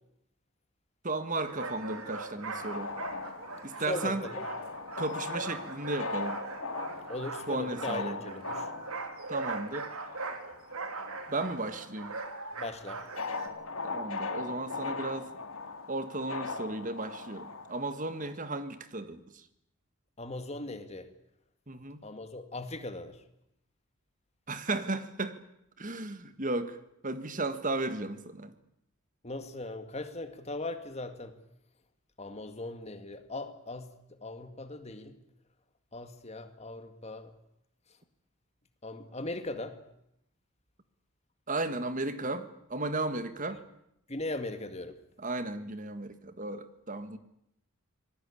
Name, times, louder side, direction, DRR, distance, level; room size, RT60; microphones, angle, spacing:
voice 1, 1.0-2.9 3.6-4.2 5.0-6.4 7.5-8.2 9.3-9.9 11.3-12.1 13.8-15.3 15.9-19.2 21.7-22.0 24.5-25.4 25.8-26.8 27.0-28.5 41.5-43.6 45.2-47.2, right 2 dB, 35° right, 11 dB, 1.7 m, -34 dB
sound 1, 1.5-13.5, right 3 dB, 85° right, 2.9 m, -41 dB
sound 2, 2.5-11.5 11.8-18.3, left 3 dB, 70° left, 2.0 m, -40 dB
voice 2, 3.9-4.5 7.1-8.7 12.6-13.0 20.2-21.1 22.0-23.2 29.2-31.3 32.2-33.9 34.2-35.1 35.9-37.3 38.8-39.8 44.1-45.0, left 2 dB, 30° left, 8 dB, 2.1 m, -39 dB
26.0 x 19.5 x 8.6 m, 0.80 s
head